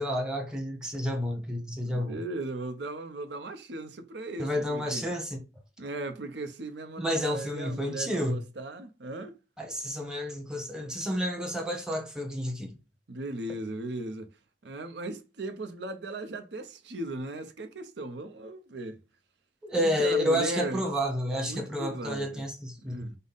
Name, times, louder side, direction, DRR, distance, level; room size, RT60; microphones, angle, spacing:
voice 1, 0.0-2.2 4.4-5.4 7.0-8.4 9.6-12.8 19.6-23.1, equal, 5° right, 0.8 m, -30 dB
voice 2, 1.8-5.0 5.8-9.4 13.1-14.3 14.6-19.0 19.7-20.8 21.4-22.4 22.8-23.2, right 2 dB, 75° right, 0.7 m, -37 dB
5.4 x 2.1 x 4.0 m
head